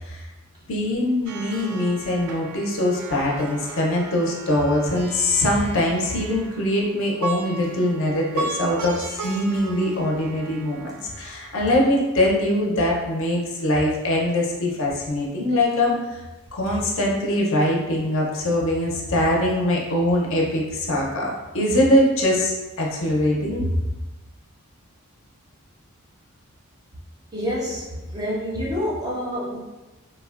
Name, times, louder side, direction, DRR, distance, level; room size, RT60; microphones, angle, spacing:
voice 1, 0.7-16.2 16.5-23.7, left 1 dB, 60° left, -2 dB, 0.5 m, -22 dB
Plucked string instrument, 1.3-11.6, right 4 dB, 85° right, 0.3 m, -36 dB
voice 2, 27.3-29.6, equal, 15° right, -5 dB, 0.4 m, -27 dB
3.2 x 2.1 x 2.3 m, 1.1 s
head